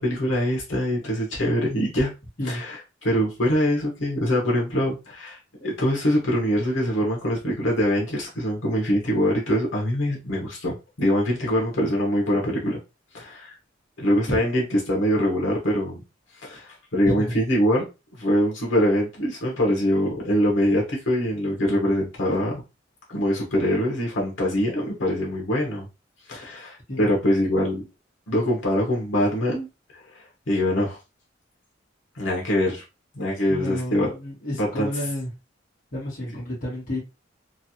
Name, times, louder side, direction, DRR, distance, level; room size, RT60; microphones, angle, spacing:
voice 1, 0.0-2.1 2.4-12.8 13.1-13.6 14.0-16.0 16.4-17.9 18.2-22.6 23.1-25.9 26.3-27.8 28.3-29.7 29.9-31.0 32.1-32.8 33.1-34.1 34.6-34.9, equal, 90° left, 1.0 m, -23 dB
voice 2, 33.5-35.3 35.9-37.0, left 1 dB, 45° left, 1.4 m, -30 dB
3.1 x 2.4 x 2.7 m
head